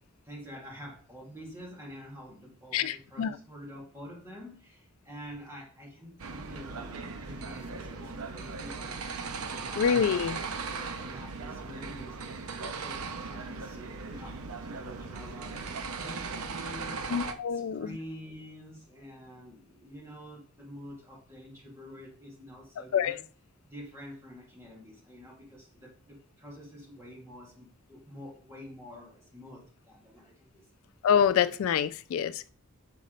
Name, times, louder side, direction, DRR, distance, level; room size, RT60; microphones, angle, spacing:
voice 1, 0.2-9.2 9.5-23.2 23.6-30.7, equal, 15° right, 2.1 m, -47 dB
voice 2, 2.7-3.3 9.8-10.4 17.1-17.9 22.9-23.2 31.0-32.5, left 8 dB, 70° left, 0.3 m, -26 dB
sound 1, 6.2-17.3, right 4 dB, 80° right, 0.7 m, -38 dB
6.5 x 4.1 x 3.9 m
head